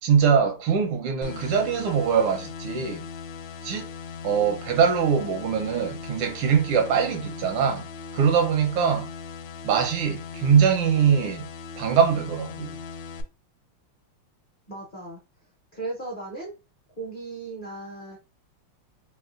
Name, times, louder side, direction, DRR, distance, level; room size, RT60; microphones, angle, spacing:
voice 1, 0.0-3.1 3.6-3.9 4.2-7.9 8.1-9.1 9.6-11.5 11.8-12.7, right 7 dB, 85° right, 1.7 m, -22 dB
sound 1, 1.2-13.2, left 5 dB, 75° left, 1.4 m, -39 dB
voice 2, 14.7-15.2 15.7-16.5 17.0-18.2, right 2 dB, 45° left, 0.6 m, -36 dB
4.1 x 2.9 x 2.4 m
omnidirectional pair, 2.4 m